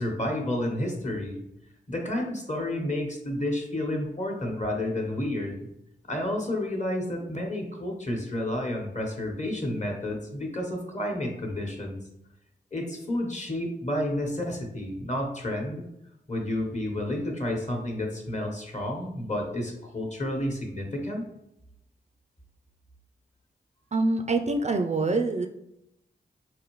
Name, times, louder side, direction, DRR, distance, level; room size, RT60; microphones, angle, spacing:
voice 1, 0.0-1.4 1.9-5.7 6.1-12.0 12.7-15.8 16.3-21.2, left 1 dB, 35° left, 1 dB, 1.1 m, -30 dB
voice 2, 23.9-25.5, right 3 dB, 35° right, 5 dB, 0.4 m, -25 dB
4.0 x 2.6 x 3.0 m, 0.82 s
cardioid pair, 40°, 20 cm